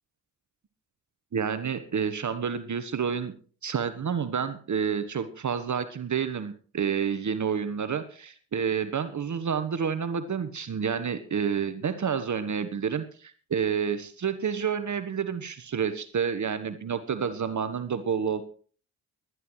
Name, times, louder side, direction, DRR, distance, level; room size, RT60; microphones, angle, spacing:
voice 1, 1.3-3.3 3.6-18.4, right 7 dB, 35° right, 11 dB, 1.2 m, -29 dB
20.5 x 11.0 x 3.2 m, 0.42 s
figure-of-eight pair, 40°, 48 cm